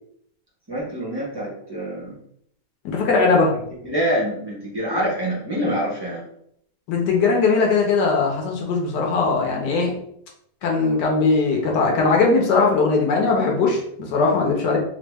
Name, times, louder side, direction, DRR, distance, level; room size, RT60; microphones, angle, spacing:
voice 1, 0.7-2.2 3.8-6.3, equal, 30° right, -6 dB, 0.4 m, -26 dB
voice 2, 2.8-3.5 6.9-9.9 10.6-13.8 14.1-14.8, left 4 dB, 75° left, 0 dB, 1.2 m, -19 dB
3.4 x 2.0 x 3.4 m, 0.70 s
omnidirectional pair, 1.9 m